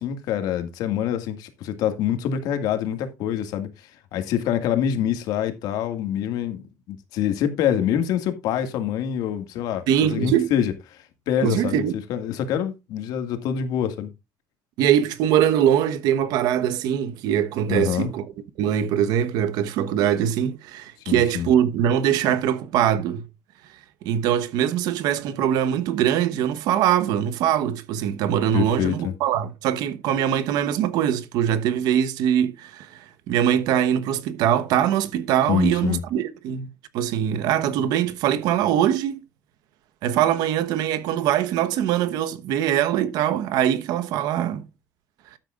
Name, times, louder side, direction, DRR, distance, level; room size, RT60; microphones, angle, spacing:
voice 1, 0.0-3.7 4.1-9.8 10.1-10.7 11.3-11.8 12.1-14.1 17.7-18.1 21.1-21.5 28.5-29.1 35.5-36.0, left 9 dB, 75° left, 2.0 m, -25 dB
voice 2, 9.9-10.5 11.4-11.9 14.8-18.3 18.6-23.3 24.0-36.7 36.9-39.2 40.0-44.6, right 10 dB, 80° right, 1.1 m, -22 dB
13.0 x 8.9 x 2.5 m
cardioid pair, 160°, 7 cm